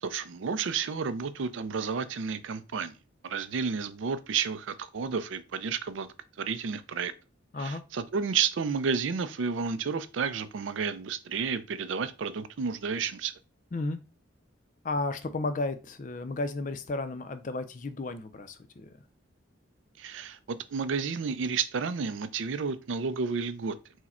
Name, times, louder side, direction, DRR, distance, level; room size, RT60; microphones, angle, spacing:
voice 1, 0.0-2.9 3.2-6.1 6.4-7.1 7.6-13.3 20.0-23.7, right 5 dB, 75° right, 0.4 m, -31 dB
voice 2, 7.5-7.8 13.7-14.0 14.8-19.0, left 2 dB, 40° left, 0.4 m, -33 dB
4.7 x 2.1 x 4.2 m
head